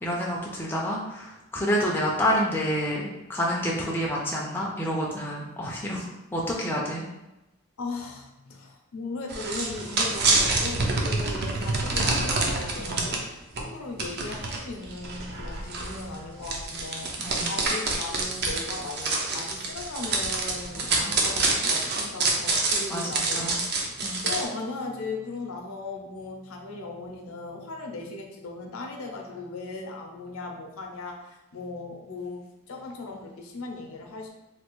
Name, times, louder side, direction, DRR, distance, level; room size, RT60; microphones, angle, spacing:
voice 1, 0.0-7.0 12.9-13.0 17.2-17.6 20.9-21.1 22.9-23.6 24.0-24.3, equal, 10° left, -3 dB, 0.4 m, -28 dB
voice 2, 7.8-23.6 23.9-34.3, left 3 dB, 70° left, 2 dB, 0.5 m, -37 dB
sound 1, 9.3-13.2 13.6-13.7 14.0-24.4, right 3 dB, 45° right, 0.5 m, -27 dB
3.2 x 2.3 x 3.0 m, 0.98 s
head